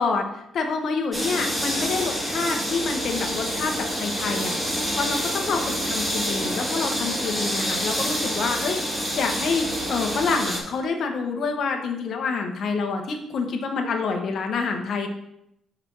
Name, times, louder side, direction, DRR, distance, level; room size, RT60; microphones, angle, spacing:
voice 1, 0.0-4.5 4.9-15.1, left 4 dB, 60° left, 3 dB, 1.2 m, -27 dB
sound 1, 1.1-10.6, equal, 10° right, 2.3 m, -27 dB
5.3 x 4.9 x 6.2 m, 0.80 s
cardioid pair, 90°, 0 cm